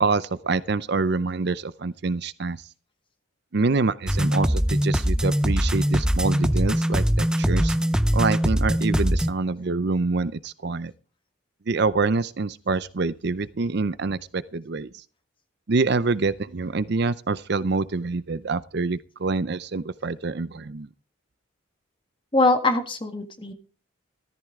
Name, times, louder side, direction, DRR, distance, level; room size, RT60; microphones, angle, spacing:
voice 1, 0.0-2.7 3.5-7.8 8.1-10.9 11.7-15.0 15.7-20.9, right 3 dB, 50° right, 0.5 m, -26 dB
sound 1, 4.1-9.3, equal, 5° right, 0.5 m, -22 dB
voice 2, 22.3-23.5, left 2 dB, 25° left, 1.6 m, -22 dB
14.5 x 13.5 x 3.6 m
head